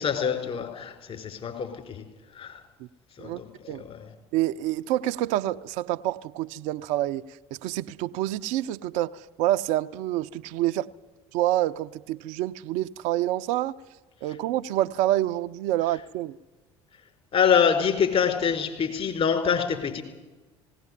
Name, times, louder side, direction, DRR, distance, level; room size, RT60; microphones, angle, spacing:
voice 1, 0.0-2.0 2.3-2.6 3.2-4.1 17.3-20.0, left 7 dB, 45° left, 4.6 m, -25 dB
voice 2, 4.3-7.2 7.5-10.9 11.3-13.8 14.2-16.4, right 14 dB, 65° right, 0.6 m, -27 dB
18.5 x 17.5 x 10.0 m
hypercardioid pair, 65°, 14 cm